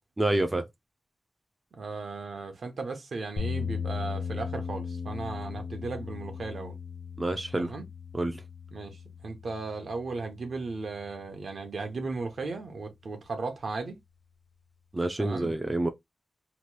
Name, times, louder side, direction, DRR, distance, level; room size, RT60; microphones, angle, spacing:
voice 1, 0.2-0.6 7.2-7.7 8.1-8.4 14.9-15.9, right 2 dB, 20° right, 0.3 m, -28 dB
voice 2, 1.7-6.7 7.6-7.8 8.7-9.0 9.2-14.0 15.2-15.5, right 3 dB, 65° right, 0.7 m, -36 dB
sound 1, 3.4-11.5, left 6 dB, 80° left, 0.9 m, -38 dB
2.9 x 2.2 x 3.0 m
wide cardioid pair, 160°, 0 cm